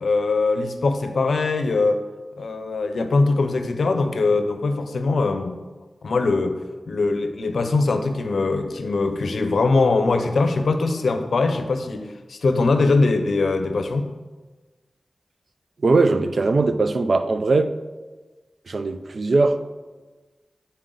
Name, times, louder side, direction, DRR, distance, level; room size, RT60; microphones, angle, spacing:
voice 1, 0.0-2.0 2.4-5.6 6.0-6.6 6.9-14.1, left 3 dB, 85° left, 8 dB, 0.6 m, -21 dB
voice 2, 15.8-17.7 18.7-19.6, right 3 dB, 70° right, 10 dB, 0.4 m, -20 dB
9.0 x 4.3 x 3.8 m, 1.3 s
cardioid pair, 50°, 0 cm